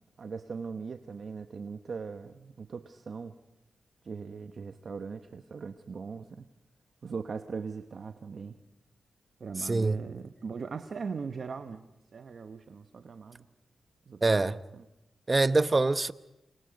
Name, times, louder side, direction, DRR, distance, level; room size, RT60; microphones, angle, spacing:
voice 1, 0.0-3.3 4.0-6.5 7.0-8.6 9.4-13.5 14.1-14.8, right 5 dB, 60° right, 1.0 m, -40 dB
voice 2, 9.6-10.0 14.2-14.6 15.3-16.1, right 3 dB, 30° right, 0.9 m, -24 dB
29.5 x 26.5 x 5.3 m
cardioid pair, 70°, 0 cm